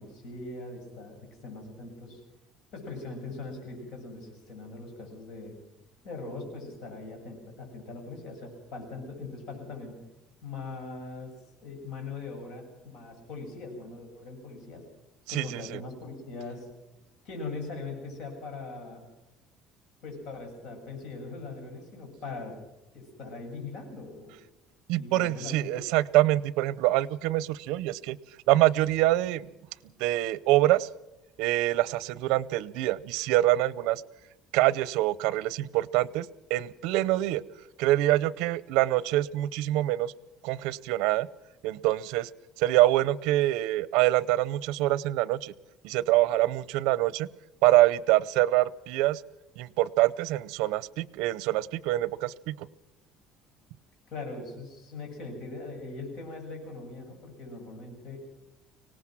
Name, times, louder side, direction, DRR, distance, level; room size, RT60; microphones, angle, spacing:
voice 1, 0.0-2.2 2.7-5.6 6.0-10.0 10.4-11.3 11.6-14.8 15.3-16.7 17.2-19.1 20.0-22.6 22.9-24.4 24.9-25.8 54.1-58.2, left 3 dB, 60° left, 2 dB, 7.5 m, -41 dB
voice 2, 15.3-15.8 24.9-28.2 28.5-29.5 30.0-30.9 31.4-34.0 34.5-37.4 37.8-40.1 40.4-41.3 41.6-42.3 42.6-45.5 45.8-47.3 47.6-49.2 49.6-52.7, right 16 dB, 80° right, 21 dB, 0.6 m, -25 dB
24.5 x 18.5 x 6.1 m, 0.97 s
cardioid pair, 165°, 0 cm